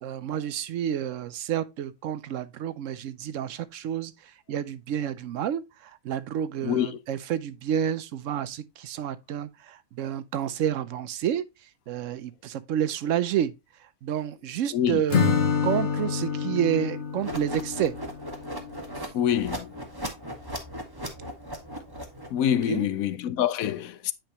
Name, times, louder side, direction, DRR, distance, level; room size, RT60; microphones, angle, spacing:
voice 1, 0.0-4.1 4.5-11.5 11.9-13.5 14.0-15.3 15.6-17.9 22.7-22.9, right 10 dB, 70° right, 0.9 m, -29 dB
Acoustic guitar / Strum, 15.1-19.0, left 6 dB, 55° left, 1.3 m, -27 dB
sound 1, 17.2-22.5, equal, 15° right, 1.3 m, -37 dB
voice 2, 19.1-19.7 22.3-24.1, left 10 dB, 85° left, 1.1 m, -25 dB
8.9 x 5.0 x 2.8 m
omnidirectional pair, 1.4 m